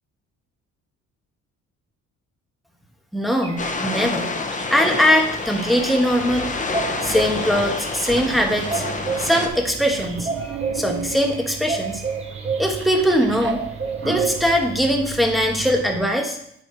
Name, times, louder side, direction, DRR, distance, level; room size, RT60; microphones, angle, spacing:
voice 1, 3.1-4.3 4.7-6.5 7.0-8.8 9.2-12.0 12.6-13.6 14.0-16.4, equal, ahead, 2 dB, 1.5 m, -21 dB
sound 1, 3.4-14.8, right 5 dB, 20° right, 1.2 m, -32 dB
sound 2, 3.6-9.5, left 3 dB, 25° left, 1.0 m, -28 dB
sound 3, 6.2-16.1, right 5 dB, 40° right, 0.8 m, -35 dB
9.9 x 4.4 x 4.6 m, 0.72 s
cardioid pair, 90°, 30 cm